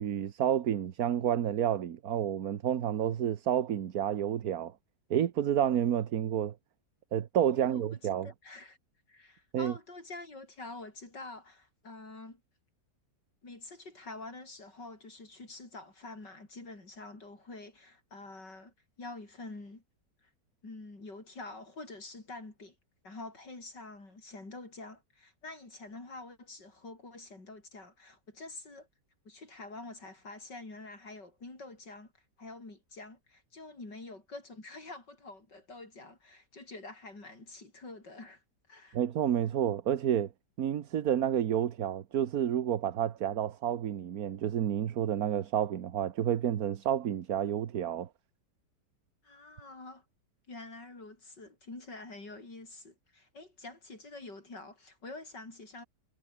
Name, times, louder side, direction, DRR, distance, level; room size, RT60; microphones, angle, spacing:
voice 1, 0.0-4.7 5.1-6.5 7.1-8.3 9.5-9.7 38.9-40.3 40.6-48.1, right 10 dB, 60° right, 1.5 m, -30 dB
voice 2, 7.6-8.8 9.1-12.4 13.4-19.8 20.2-20.3 20.6-22.7 23.0-28.9 29.2-32.1 32.4-38.4 38.7-39.0 49.2-50.0 50.5-55.8, left 2 dB, 85° left, 6.7 m, -47 dB
omnidirectional pair, 1.8 m